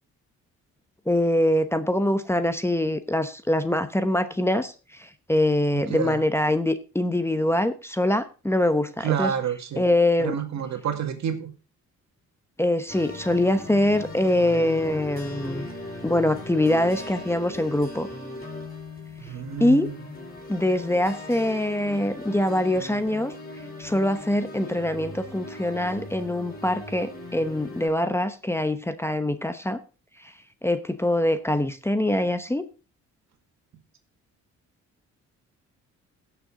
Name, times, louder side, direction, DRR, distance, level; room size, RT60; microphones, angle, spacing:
voice 1, 1.1-9.3 9.8-10.4 12.6-15.7 16.0-18.1 19.6-19.9 20.5-23.3 23.8-29.8 30.2-30.3 30.6-32.6, left 1 dB, 10° left, 11 dB, 0.9 m, -24 dB
voice 2, 5.7-6.2 9.0-9.8 10.2-11.5 19.2-20.0, right 9 dB, 65° right, 6 dB, 2.2 m, -29 dB
sound 1, 12.9-27.9, left 1 dB, 30° left, 5.1 m, -39 dB
16.0 x 6.8 x 3.8 m, 0.33 s
cardioid pair, 90°, 30 cm